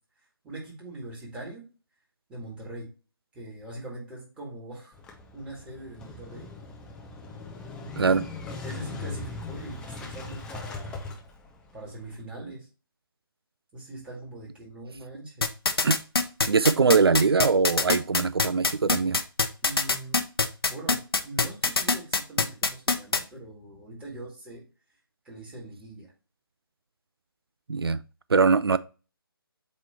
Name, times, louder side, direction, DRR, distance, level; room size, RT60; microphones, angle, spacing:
voice 1, 0.4-1.6 2.3-2.9 3.3-4.9 5.3-6.5 7.9-8.2 8.6-11.0 11.7-12.7 13.7-15.5 19.6-20.2 20.6-24.6 25.2-26.1, right 2 dB, 10° right, 2.1 m, -42 dB
Motorcycle / Engine starting, 4.9-12.2, left 3 dB, 5° left, 0.5 m, -40 dB
sound 1, 15.4-23.2, left 3 dB, 75° left, 0.9 m, -23 dB
voice 2, 16.5-19.2 27.7-28.0 28.3-28.8, right 5 dB, 75° right, 0.4 m, -22 dB
8.0 x 3.1 x 4.4 m
figure-of-eight pair, 145°, 13 cm